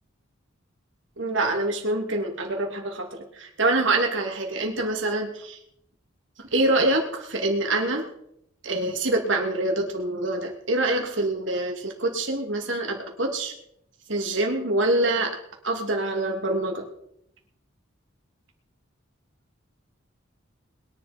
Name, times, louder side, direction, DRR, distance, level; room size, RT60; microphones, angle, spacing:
voice 1, 1.2-3.1 3.4-5.6 6.4-8.1 8.6-13.5 14.1-15.4 15.6-16.8, right 2 dB, 70° right, 2 dB, 2.8 m, -25 dB
21.5 x 11.0 x 4.5 m, 0.75 s
head